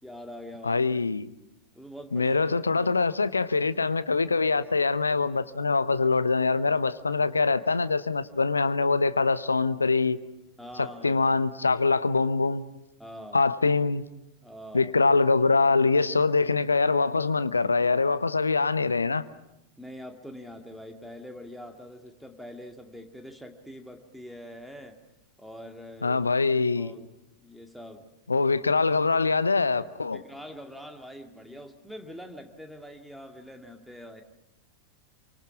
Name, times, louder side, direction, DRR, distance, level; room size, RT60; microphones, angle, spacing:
voice 1, 0.0-1.1 1.7-2.4 2.8-2.9 10.6-11.2 13.0-13.4 14.4-14.9 19.8-25.0 25.4-26.2 26.6-27.1 27.4-28.1 30.1-34.2, equal, ahead, 2.2 m, -44 dB
voice 2, 0.6-1.3 2.1-10.2 10.8-12.7 13.3-14.0 14.7-19.2 26.0-26.9 28.3-30.2, left 4 dB, 80° left, 0.8 m, -24 dB
27.5 x 24.5 x 6.1 m
figure-of-eight pair, 90°, 0 cm